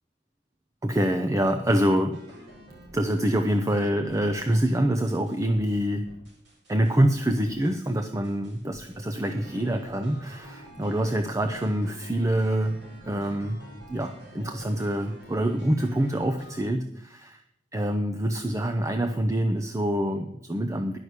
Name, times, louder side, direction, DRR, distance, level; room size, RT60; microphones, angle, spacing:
voice 1, 0.8-2.2 2.9-6.1 6.7-12.8 13.1-13.6 13.9-17.4 17.7-21.0, right 1 dB, 20° right, 6 dB, 0.6 m, -25 dB
sound 1, 2.1-3.8 4.1-4.8 5.1-7.0 7.2-8.0 8.2-16.6, right 1 dB, 85° right, 5.2 m, -48 dB
11.0 x 6.3 x 8.1 m, 0.75 s
head